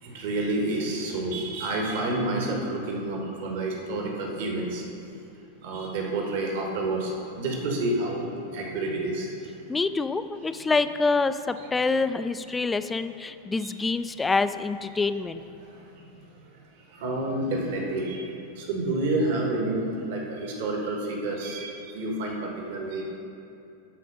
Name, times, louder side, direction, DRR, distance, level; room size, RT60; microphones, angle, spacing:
voice 1, 0.0-4.8 5.6-7.1 7.4-8.3 8.5-9.3 13.6-13.7 15.6-15.7 16.9-23.2, right 2 dB, 50° right, 0 dB, 1.4 m, -29 dB
voice 2, 9.7-15.4, left 3 dB, 10° left, 11 dB, 0.3 m, -26 dB
12.0 x 4.2 x 5.3 m, 2.7 s
figure-of-eight pair, 90°, 0 cm